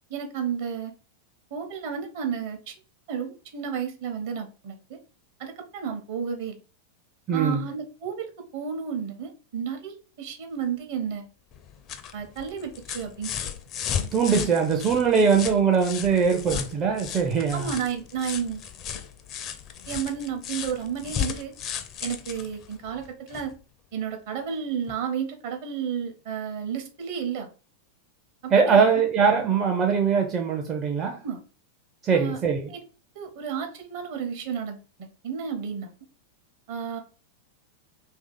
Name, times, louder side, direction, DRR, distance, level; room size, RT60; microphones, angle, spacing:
voice 1, 0.1-0.9 1.5-2.7 3.1-5.0 5.4-6.6 7.3-11.3 12.1-13.3 16.1-16.3 16.5-16.6 17.5-18.6 19.9-21.5 22.0-23.5 23.9-27.5 28.4-29.1 31.2-31.4 32.1-32.4 32.7-32.8 33.1-35.9 36.7-37.0, right 7 dB, 50° right, 0.8 m, -32 dB
voice 2, 7.3-7.8 14.1-17.7 28.5-31.2 32.0-32.7, right 6 dB, 30° right, 0.5 m, -22 dB
sound 1, 11.5-23.5 24.9-25.0, left 8 dB, 35° left, 0.5 m, -35 dB
2.9 x 2.7 x 3.8 m
figure-of-eight pair, 90°, 0 cm